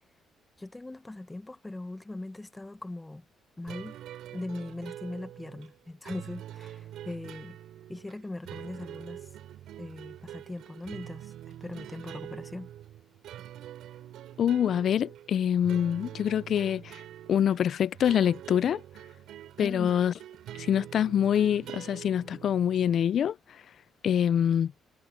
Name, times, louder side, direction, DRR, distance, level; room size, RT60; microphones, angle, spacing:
voice 1, 0.6-3.2 3.6-4.0 4.3-7.6 7.9-9.2 9.8-12.7 19.6-20.0, left 2 dB, 15° left, 1.0 m, -40 dB
sound 1, 3.7-22.9, right 12 dB, 80° right, 3.8 m, -45 dB
voice 2, 14.4-17.0 17.3-18.8 19.6-20.1 20.6-23.4 24.0-24.7, left 9 dB, 65° left, 0.4 m, -25 dB
cardioid pair, 90°, 0 cm